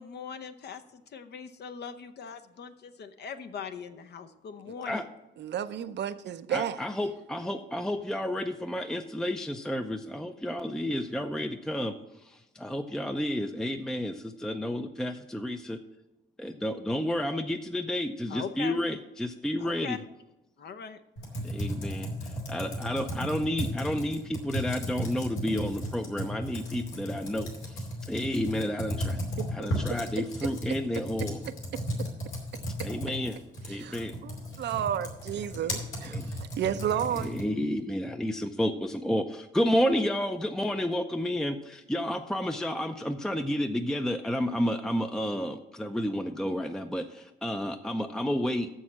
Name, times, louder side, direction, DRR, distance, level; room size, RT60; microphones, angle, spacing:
voice 1, 0.0-5.1 18.3-18.8 19.6-20.1 20.6-21.0, left 7 dB, 55° left, 0.8 m, -41 dB
voice 2, 5.4-6.8 29.4-29.9 31.4-31.8 33.7-37.3, right 9 dB, 60° right, 0.6 m, -33 dB
voice 3, 6.5-11.9 12.2-15.8 16.4-20.0 21.4-29.2 29.5-31.4 32.8-33.4 33.7-34.1 36.1-36.2 37.2-48.7, equal, 5° left, 0.5 m, -31 dB
Computer keyboard, 21.2-37.6, equal, 80° left, 2.7 m, -35 dB
6.9 x 6.4 x 7.4 m
cardioid pair, 90°, 20 cm